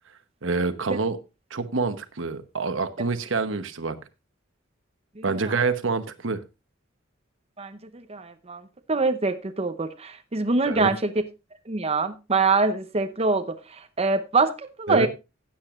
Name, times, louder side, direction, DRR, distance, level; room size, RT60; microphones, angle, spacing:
voice 1, 0.4-1.2 1.5-4.0 5.2-6.4 10.6-10.9 14.9-15.1, right 4 dB, 70° right, 10 dB, 1.0 m, -26 dB
voice 2, 5.2-5.5 7.6-8.6 8.9-11.1 11.7-13.6 14.0-15.1, right 3 dB, 30° right, 8 dB, 0.8 m, -24 dB
16.0 x 8.7 x 2.5 m, 0.26 s
head